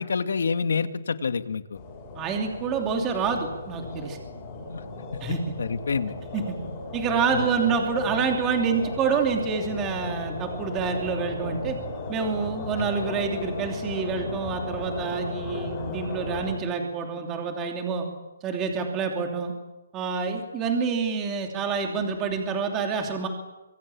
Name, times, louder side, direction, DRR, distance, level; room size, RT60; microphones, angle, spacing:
voice 1, 0.0-1.8 4.7-4.8 5.1-6.2 7.3-7.5 12.8-13.0, left 5 dB, 65° left, 9 dB, 2.1 m, -28 dB
sound 1, 1.7-16.6, left 3 dB, 15° left, 6.6 m, -36 dB
voice 2, 2.1-4.2 5.2-5.4 6.3-6.5 6.9-11.8 12.1-18.1 18.4-19.5 19.9-23.3, right 5 dB, 15° right, 3 dB, 3.0 m, -27 dB
25.5 x 24.5 x 8.7 m, 1.0 s
hypercardioid pair, 175°, 0 cm